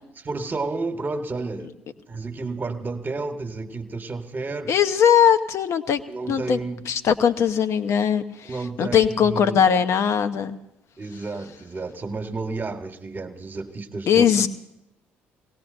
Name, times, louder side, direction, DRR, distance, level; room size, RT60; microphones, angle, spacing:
voice 1, 0.2-1.7 2.1-4.7 6.1-6.9 8.5-9.6 11.0-14.5, right 3 dB, 30° right, 1.3 m, -31 dB
voice 2, 4.7-6.0 6.3-6.6 6.9-10.6 14.1-14.5, left 8 dB, 50° left, 0.9 m, -20 dB
23.5 x 18.0 x 2.6 m
figure-of-eight pair, 50°, 6 cm